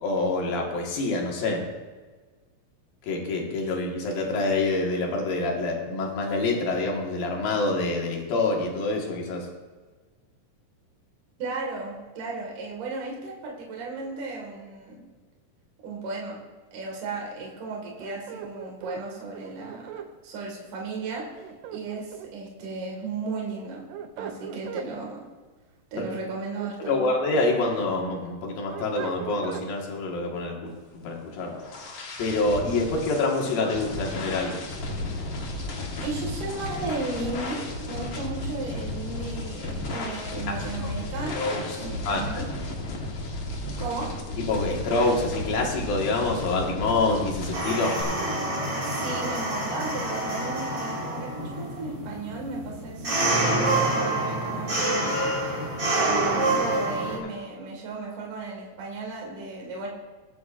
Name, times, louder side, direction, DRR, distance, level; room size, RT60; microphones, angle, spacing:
voice 1, 0.0-1.6 3.0-9.5 26.0-26.1 26.8-31.5 32.2-34.5 40.5-40.6 40.8-40.9 41.4-42.4 44.5-48.0, left 2 dB, 85° left, -1 dB, 3.5 m, -26 dB
voice 2, 11.4-15.0 15.8-16.4 16.7-19.9 20.2-21.3 21.7-23.8 24.2-25.2 25.9-27.1 36.0-41.4 41.8-42.5 43.8-44.1 48.8-55.2 55.9-59.9, right 3 dB, 65° right, -1 dB, 3.3 m, -35 dB
sound 1, 18.0-20.1 21.4-22.5 23.7-24.9 26.3-27.4 27.9-29.7, right 8 dB, 85° right, 2.4 m, -39 dB
sound 2, 31.1-48.0, left 2 dB, 50° left, 1.4 m, -34 dB
sound 3, 47.5-57.2, right 2 dB, 30° right, 2.0 m, -27 dB
21.0 x 8.2 x 2.5 m, 1.4 s
omnidirectional pair, 4.0 m